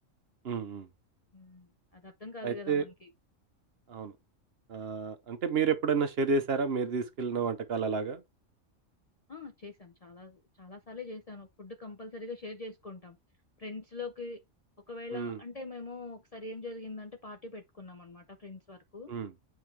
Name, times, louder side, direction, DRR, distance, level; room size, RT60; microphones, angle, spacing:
voice 1, 0.4-0.9 2.4-2.8 3.9-4.1 4.7-8.2 15.1-15.4 19.1-19.3, right 5 dB, 55° right, 0.9 m, -30 dB
voice 2, 1.3-3.1 9.3-13.2 13.6-14.4 14.9-19.1, left 3 dB, 40° left, 0.5 m, -43 dB
7.9 x 4.6 x 3.2 m
omnidirectional pair, 1.3 m